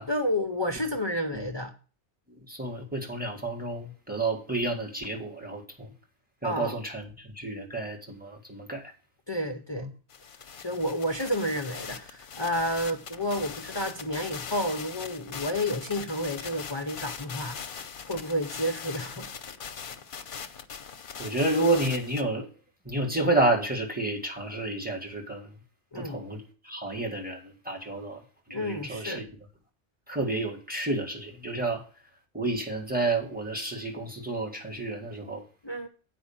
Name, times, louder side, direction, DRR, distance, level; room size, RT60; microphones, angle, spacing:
voice 1, 0.1-1.7 6.4-6.7 9.3-9.9 10.6-17.6 18.1-19.3 25.9-26.2 28.5-29.3 35.6-35.9, left 1 dB, 30° left, 3 dB, 0.6 m, -30 dB
voice 2, 2.5-5.9 6.4-8.9 9.7-9.9 21.2-22.5 22.8-25.5 25.9-28.2 28.5-29.2 30.1-31.8 32.3-35.4, right 2 dB, 10° right, 0 dB, 1.8 m, -30 dB
sound 1, 10.1-22.2, left 6 dB, 50° left, 0.8 m, -41 dB
8.7 x 5.1 x 7.2 m, 0.38 s
omnidirectional pair, 1.2 m